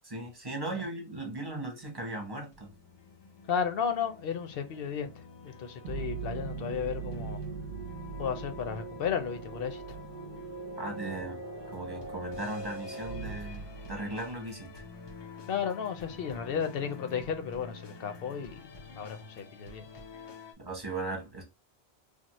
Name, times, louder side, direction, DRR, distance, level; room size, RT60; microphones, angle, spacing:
voice 1, 0.1-2.7 10.8-11.4 11.7-14.8 20.6-21.4, right 2 dB, 25° right, 0.9 m, -37 dB
sound 1, 2.2-20.5, left 4 dB, 40° left, 0.4 m, -49 dB
voice 2, 3.5-7.4 8.2-10.0 15.5-18.6 18.9-19.9, left 7 dB, 65° left, 0.8 m, -34 dB
sound 2, 5.8-14.5, right 4 dB, 60° right, 0.7 m, -40 dB
3.7 x 2.0 x 3.0 m
omnidirectional pair, 1.1 m